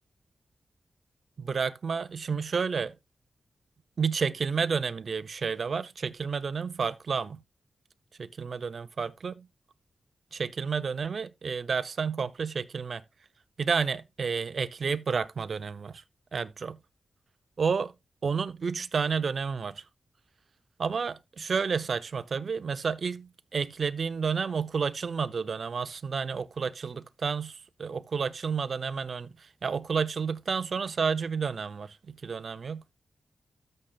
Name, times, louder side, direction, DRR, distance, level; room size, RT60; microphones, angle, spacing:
voice 1, 1.4-2.9 4.0-7.4 8.2-9.5 10.3-13.0 13.6-16.0 16.3-16.8 17.6-17.9 18.2-19.8 20.8-32.8, right 5 dB, 65° right, 0.6 m, -30 dB
13.0 x 6.6 x 2.3 m
cardioid pair, 60°, 0 cm